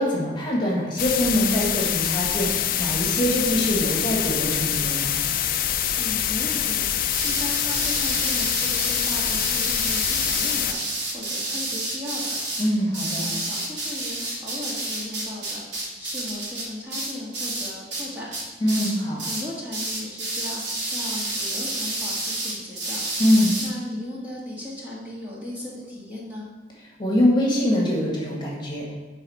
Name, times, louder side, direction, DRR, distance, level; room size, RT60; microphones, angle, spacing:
voice 1, 0.0-5.2 12.6-13.3 18.6-19.2 23.2-23.5 27.0-28.9, left 1 dB, 25° left, -4 dB, 1.8 m, -23 dB
sound 1, 1.0-10.7, left 10 dB, 55° left, 0.5 m, -25 dB
voice 2, 6.0-10.8 11.1-12.4 12.8-18.4 19.2-20.6 20.9-23.0 23.6-26.5, left 1 dB, 10° right, -6 dB, 1.7 m, -37 dB
sound 2, 7.1-18.1 18.3-18.9 19.2-19.5 19.7-23.7, right 2 dB, 85° right, 2.5 m, -30 dB
11.0 x 4.1 x 4.3 m, 1.2 s
head